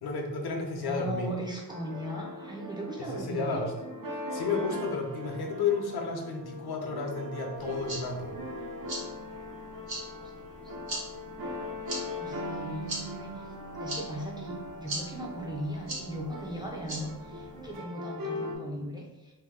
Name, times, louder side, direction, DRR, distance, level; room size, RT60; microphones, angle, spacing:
voice 1, 0.0-1.3 3.0-3.7 4.3-8.4, left 4 dB, 75° left, 2 dB, 0.7 m, -32 dB
voice 2, 0.8-3.7 10.2-10.7 12.1-19.3, right 1 dB, 10° right, -2 dB, 0.4 m, -38 dB
sound 1, 1.7-18.5, left 1 dB, 55° right, 0.6 m, -40 dB
sound 2, 7.6-17.8, right 1 dB, 75° right, 1.2 m, -42 dB
2.7 x 2.1 x 3.6 m, 0.99 s
wide cardioid pair, 135°, 39 cm